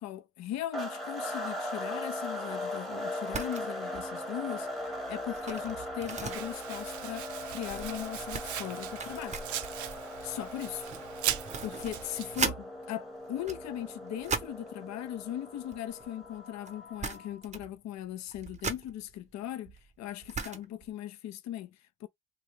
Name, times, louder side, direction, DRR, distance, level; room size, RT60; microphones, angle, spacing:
voice 1, 0.0-9.4 10.2-10.8 11.6-22.1, left 12 dB, 65° left, 0.5 m, -39 dB
sound 1, 0.7-17.4, left 1 dB, ahead, 0.8 m, -39 dB
sound 2, 3.3-3.7 3.9-4.2 4.6-12.6 13.3-14.7 15.6-16.4 16.7-16.8 17.0-17.8 18.0-20.9, right 5 dB, 25° right, 0.6 m, -39 dB
Domestic sounds home sounds, 6.1-12.5, right 12 dB, 70° right, 0.5 m, -39 dB
3.0 x 2.3 x 3.0 m
cardioid pair, 90°, 30 cm